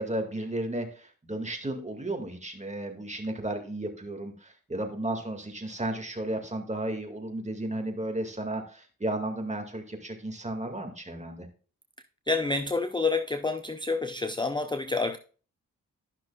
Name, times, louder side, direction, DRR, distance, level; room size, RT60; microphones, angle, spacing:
voice 1, 0.0-11.5, right 1 dB, 20° right, 2.0 m, -34 dB
voice 2, 12.3-15.2, left 3 dB, 15° left, 0.5 m, -28 dB
12.5 x 6.0 x 2.3 m
cardioid pair, 55°, 35 cm